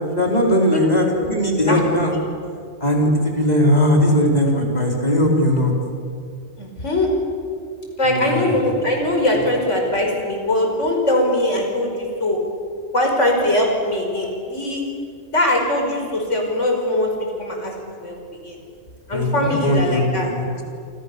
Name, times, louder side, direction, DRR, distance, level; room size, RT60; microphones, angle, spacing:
voice 1, 0.2-2.1 2.8-5.7 8.1-8.6 19.1-20.5, equal, 30° left, 0 dB, 4.4 m, -19 dB
voice 2, 6.6-7.1 8.0-12.4 12.9-14.8 15.3-17.7 18.0-18.6 19.1-20.3, left 1 dB, 60° left, 1 dB, 5.6 m, -21 dB
27.5 x 27.0 x 7.0 m, 2.3 s
omnidirectional pair, 1.4 m